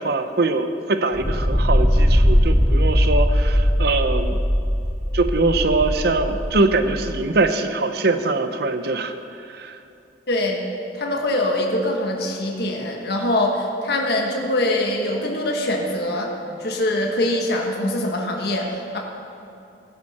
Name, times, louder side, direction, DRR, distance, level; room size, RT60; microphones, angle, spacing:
voice 1, 0.0-4.4 5.1-9.1 9.5-9.8, right 3 dB, 65° right, 9 dB, 0.7 m, -22 dB
sound 1, 1.1-7.2, equal, 5° left, 0.5 m, -19 dB
voice 2, 10.3-10.6 10.9-16.3 16.6-19.0, left 1 dB, 65° left, 0 dB, 1.4 m, -23 dB
15.5 x 11.0 x 4.3 m, 2.7 s
head